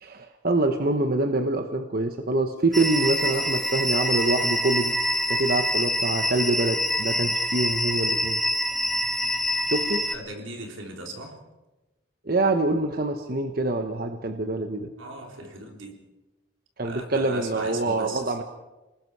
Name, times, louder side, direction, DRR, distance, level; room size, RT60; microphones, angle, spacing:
voice 1, 0.0-4.9 5.3-8.4 9.7-10.1 12.3-14.9 16.8-18.4, right 2 dB, 50° right, 5 dB, 1.1 m, -25 dB
sound 1, 2.7-10.1, equal, ahead, 1.1 m, -25 dB
voice 2, 10.1-11.4 15.0-16.1 16.8-18.4, right 2 dB, 85° right, 2 dB, 3.6 m, -38 dB
29.5 x 20.0 x 4.8 m, 1.1 s
head